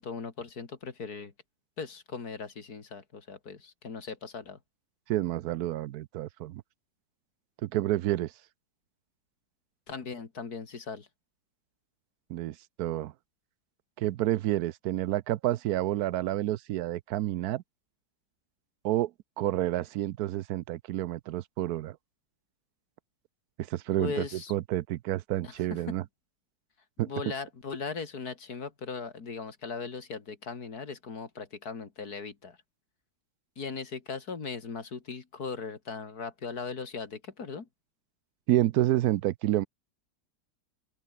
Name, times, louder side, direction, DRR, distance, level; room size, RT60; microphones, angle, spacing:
voice 1, 0.0-1.3 1.8-4.6 9.9-11.1 24.0-24.5 25.4-25.9 27.0-32.6 33.6-37.7, left 5 dB, 60° left, 2.9 m, -38 dB
voice 2, 5.1-6.6 7.6-8.3 12.3-13.1 14.0-17.6 18.8-19.1 19.4-22.0 23.7-24.2 24.5-26.0 27.0-27.1 38.5-39.7, right 14 dB, 70° right, 1.0 m, -29 dB
open air
omnidirectional pair, 1.8 m